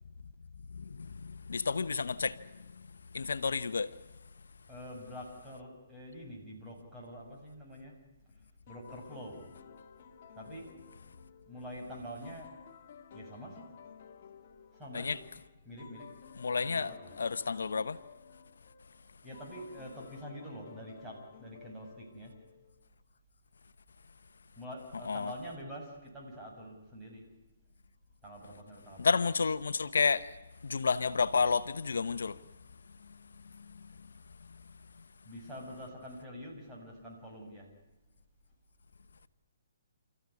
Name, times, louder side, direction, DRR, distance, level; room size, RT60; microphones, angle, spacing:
voice 1, 0.7-2.5 3.1-3.9 14.9-15.2 16.4-16.9 17.2-18.0 25.1-25.3 29.0-30.3 30.6-32.4 33.5-33.7, left 5 dB, 80° left, 0.9 m, -31 dB
voice 2, 4.7-7.9 8.7-9.4 10.3-10.7 11.5-12.5 13.1-13.6 14.7-15.2 15.6-16.1 16.6-17.1 19.2-22.3 24.5-27.2 28.2-29.2 35.2-37.7, equal, 10° right, 6.7 m, -46 dB
sound 1, 8.7-22.9, left 7 dB, 45° left, 1.8 m, -55 dB
29.0 x 14.5 x 9.7 m
hypercardioid pair, 150°, 0 cm